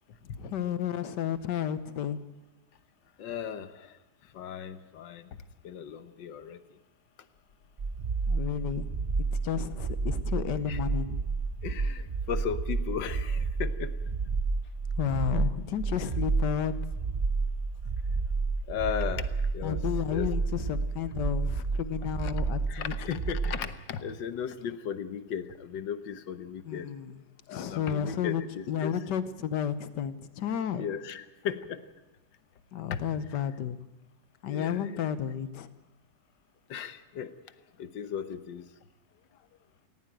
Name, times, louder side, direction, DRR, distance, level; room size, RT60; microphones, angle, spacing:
voice 1, 0.2-2.2 8.3-8.9 9.2-11.2 15.0-16.8 19.6-23.2 26.7-27.2 27.5-28.4 28.7-30.8 32.7-33.8 34.4-35.7, left 8 dB, 75° left, 13 dB, 1.6 m, -32 dB
voice 2, 3.2-4.0 4.3-5.3 5.6-6.6 10.7-10.8 11.6-13.9 18.7-19.8 20.1-20.3 22.2-22.3 22.7-26.9 27.5-28.9 30.8-31.8 32.9-33.0 34.5-35.1 36.7-37.3 37.8-38.7, left 8 dB, 90° left, 11 dB, 1.7 m, -36 dB
sound 1, 7.8-23.6, right 4 dB, 50° right, 0.5 m, -31 dB
18.5 x 16.5 x 9.0 m, 1.0 s
omnidirectional pair, 1.9 m